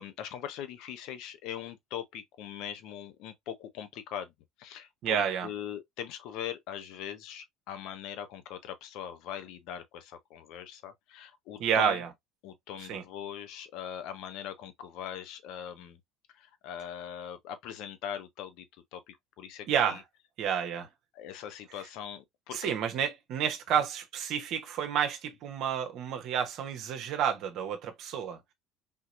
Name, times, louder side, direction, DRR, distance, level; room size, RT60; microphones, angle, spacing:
voice 1, 0.0-4.3 4.6-12.0 12.4-16.0 16.3-18.7 18.9-20.0 21.1-22.7, left 9 dB, 65° left, 0.7 m, -41 dB
voice 2, 5.0-5.5 11.6-12.1 12.8-13.0 19.7-20.0 20.4-20.9 22.5-28.4, right 8 dB, 60° right, 0.7 m, -30 dB
3.6 x 2.9 x 2.4 m
hypercardioid pair, 70°, 0 cm